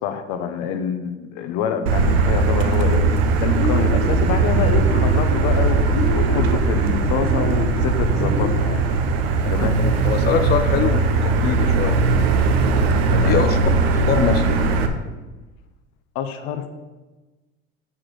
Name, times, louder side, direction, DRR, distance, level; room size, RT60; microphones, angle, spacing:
voice 1, 0.0-3.0 3.4-5.8 6.1-8.9 9.5-9.8 13.0-13.4 16.1-16.7, left 7 dB, 70° left, 8 dB, 0.9 m, -26 dB
Motor vehicle (road), 1.9-14.9, right 3 dB, 85° right, 0.9 m, -19 dB
sound 1, 3.6-8.6, left 2 dB, 85° left, 1.8 m, -29 dB
voice 2, 10.0-12.0 13.2-13.6 13.9-14.6, left 7 dB, 35° left, 8 dB, 0.6 m, -23 dB
5.8 x 4.9 x 6.3 m, 1.2 s
supercardioid pair, 100°, 30 cm